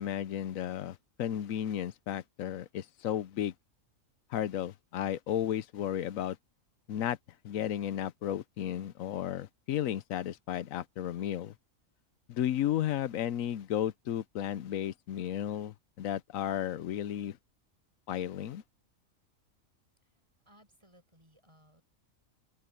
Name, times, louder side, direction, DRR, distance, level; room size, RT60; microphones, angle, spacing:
voice 1, 0.0-3.5 4.3-6.4 6.9-7.2 7.4-11.5 12.3-17.4 18.1-18.6, left 11 dB, 85° left, 1.1 m, -33 dB
voice 2, 20.5-21.8, equal, 20° right, 7.5 m, -62 dB
omnidirectional pair, 1.4 m